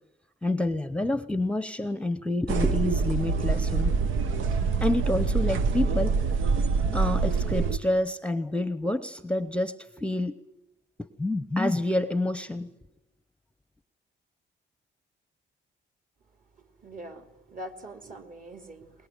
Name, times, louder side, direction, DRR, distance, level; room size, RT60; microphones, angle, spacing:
voice 1, 0.4-3.9 4.8-6.2 6.9-10.4 11.0-12.7, left 1 dB, 5° left, 13 dB, 0.9 m, -28 dB
sound 1, 2.5-7.8, right 4 dB, 80° right, 1.4 m, -25 dB
voice 2, 16.8-18.9, right 1 dB, 40° right, 7 dB, 3.2 m, -43 dB
23.5 x 20.5 x 9.2 m, 0.91 s
cardioid pair, 90°, 20 cm